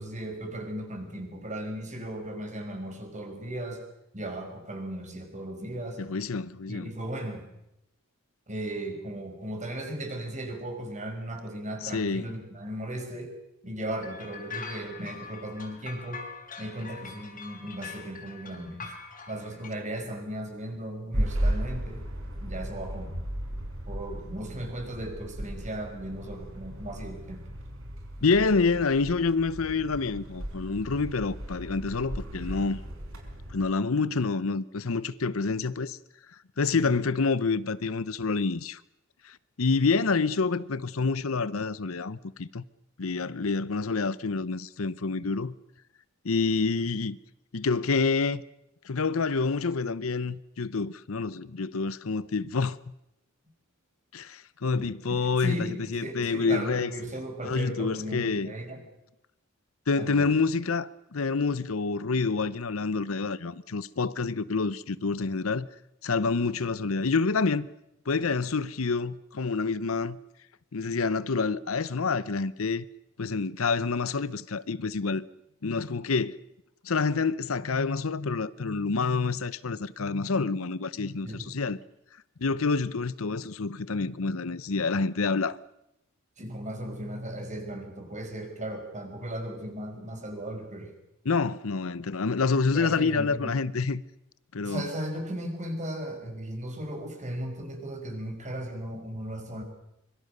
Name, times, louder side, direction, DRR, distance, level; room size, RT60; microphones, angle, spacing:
voice 1, 0.0-3.8 4.1-6.0 6.7-7.5 8.5-13.3 13.6-16.2 16.6-19.0 19.3-22.0 22.4-23.1 23.9-27.4 36.7-36.9 54.7-58.8 60.0-60.3 81.2-81.6 86.4-90.9 92.7-93.5 94.6-99.6, right 1 dB, 35° right, 5.4 m, -36 dB
voice 2, 6.0-6.9 11.9-12.3 28.2-32.8 33.5-36.0 36.6-38.8 39.2-42.6 43.0-45.5 46.2-47.2 47.5-48.4 48.8-52.8 54.1-56.9 57.4-58.5 59.9-65.7 66.0-67.7 68.1-70.2 70.7-72.8 73.2-75.2 75.6-76.4 76.8-81.8 82.4-85.6 91.2-94.0 94.5-94.9, left 4 dB, 75° left, 0.8 m, -27 dB
sound 1, 14.0-19.7, left 5 dB, 40° left, 4.8 m, -43 dB
sound 2, 21.1-33.7, right 1 dB, 75° right, 5.1 m, -35 dB
25.0 x 23.5 x 6.7 m
head